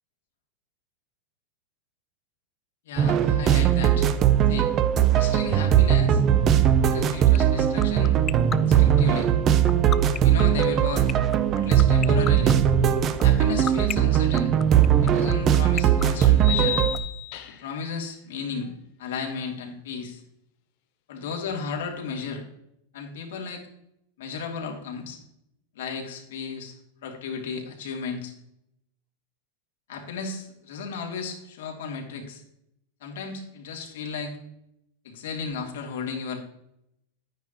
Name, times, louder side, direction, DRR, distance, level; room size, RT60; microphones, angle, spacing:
voice 1, 2.8-4.1 4.5-4.7 5.1-6.2 6.8-8.2 8.6-9.3 10.2-11.1 11.6-12.6 13.2-14.5 15.0-16.8 17.5-18.7 19.0-20.2 21.1-22.4 22.9-23.6 24.2-25.2 25.7-28.3 29.9-32.4 33.0-34.4 35.0-36.4, left 5 dB, 80° left, 1 dB, 2.7 m, -34 dB
sound 1, 3.0-17.0, right 10 dB, 30° right, 0.7 m, -20 dB
sound 2, 7.3-17.0, left 8 dB, 20° left, 0.4 m, -30 dB
sound 3, 14.7-14.8 16.4-17.8, left 13 dB, 55° left, 1.3 m, -31 dB
10.5 x 9.4 x 3.1 m, 0.78 s
supercardioid pair, 145°, 0 cm